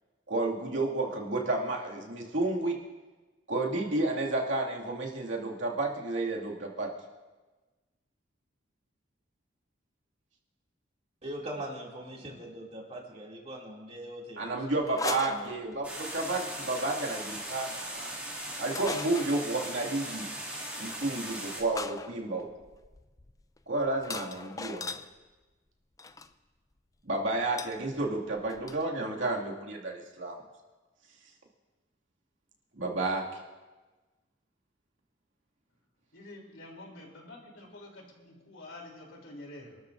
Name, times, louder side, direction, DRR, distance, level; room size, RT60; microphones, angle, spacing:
voice 1, 0.3-2.8 3.5-6.9 14.4-18.1 18.6-20.3 20.8-22.5 23.7-24.9 27.0-30.4 32.8-33.2, right 2 dB, 75° right, -2 dB, 2.3 m, -31 dB
voice 2, 11.2-14.7 15.1-15.8, right 1 dB, 35° right, -2 dB, 2.6 m, -42 dB
sound 1, 14.9-16.1 16.8-17.1 18.7-19.5 21.0-21.1 21.7-25.1 26.0-26.3 27.6-27.8 28.1-28.2 28.4-28.8, left 4 dB, 15° left, 0.4 m, -39 dB
sound 2, 15.8-21.6, right 1 dB, 5° right, 2.4 m, -39 dB
voice 3, 36.1-39.8, left 1 dB, 80° left, 0 dB, 3.3 m, -48 dB
28.0 x 13.0 x 2.6 m, 1.2 s
head